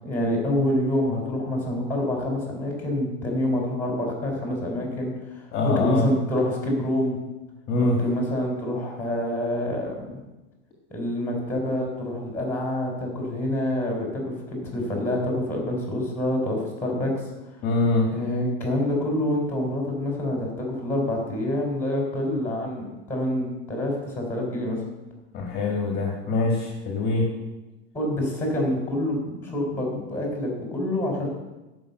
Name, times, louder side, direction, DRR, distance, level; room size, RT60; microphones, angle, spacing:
voice 1, 0.0-7.2 7.8-10.2 10.9-17.1 18.1-24.8 27.9-31.3, left 1 dB, 5° left, 0 dB, 3.3 m, -27 dB
voice 2, 5.5-6.1 7.7-8.0 17.6-18.1 25.3-27.3, left 2 dB, 30° left, 0 dB, 1.8 m, -23 dB
12.5 x 5.6 x 7.8 m, 1.1 s
supercardioid pair, 160°, 33 cm